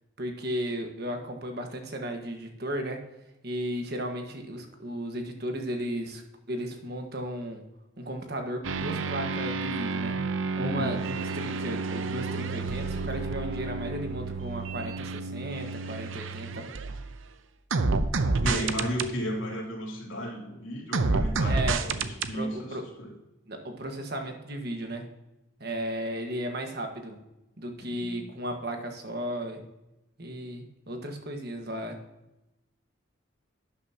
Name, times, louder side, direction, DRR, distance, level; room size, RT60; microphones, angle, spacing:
voice 1, 0.2-3.0 3.4-6.2 6.5-7.6 8.0-10.2 10.6-16.7 18.4-18.7 21.4-21.8 22.3-22.8 23.5-25.1 25.6-27.2 27.6-29.6 30.2-32.0, right 1 dB, 50° right, 4 dB, 1.5 m, -35 dB
sound 1, 8.6-17.2 17.7-19.1 20.9-22.3, right 3 dB, 80° right, 0.7 m, -30 dB
voice 2, 10.5-10.9 18.4-23.1 27.8-28.2, equal, 85° left, -2 dB, 2.9 m, -34 dB
12.0 x 8.7 x 2.9 m, 0.95 s
head